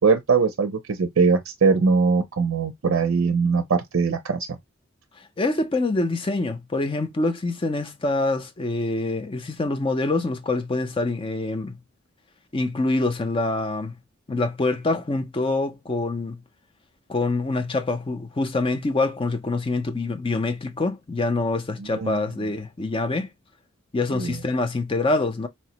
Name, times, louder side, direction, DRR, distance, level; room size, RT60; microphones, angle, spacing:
voice 1, 0.0-4.5 22.0-22.2 24.1-24.4, right 5 dB, 70° right, 0.5 m, -21 dB
voice 2, 5.2-11.8 12.5-13.9 14.3-16.4 17.1-23.3 23.9-25.5, left 2 dB, 25° left, 0.5 m, -25 dB
4.3 x 2.1 x 2.8 m
head